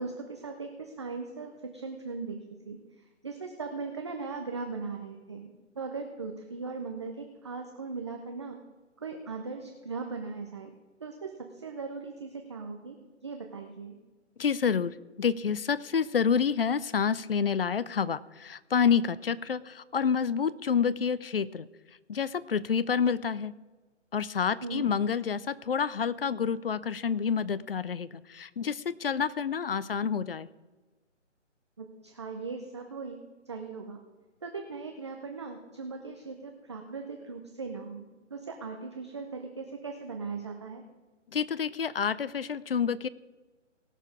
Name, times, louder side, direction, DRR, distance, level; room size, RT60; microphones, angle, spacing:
voice 1, 0.0-2.4 2.7-2.8 3.2-5.5 5.8-8.6 9.0-10.7 11.0-13.0 13.2-14.0 24.6-24.9 31.8-33.2 33.5-34.0 34.4-38.0 38.3-40.8, right 4 dB, 25° right, 4 dB, 0.6 m, -38 dB
voice 2, 14.4-21.7 22.1-23.5 24.1-30.5 41.3-43.1, left 6 dB, 50° left, 18 dB, 0.5 m, -28 dB
18.0 x 6.7 x 4.8 m, 1.3 s
figure-of-eight pair, 155°, 37 cm